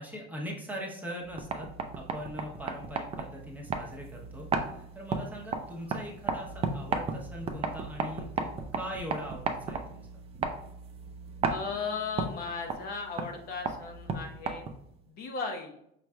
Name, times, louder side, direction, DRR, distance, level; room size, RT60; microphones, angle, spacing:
voice 1, 0.0-1.7 1.9-4.5 4.7-10.1, equal, 10° right, -2 dB, 0.8 m, -41 dB
sound 1, 1.2-15.0, right 4 dB, 30° right, 0.5 m, -35 dB
voice 2, 11.5-14.7 15.1-15.8, left 5 dB, 50° left, 4 dB, 0.7 m, -36 dB
5.2 x 3.1 x 2.3 m, 0.73 s
supercardioid pair, 120°, 21 cm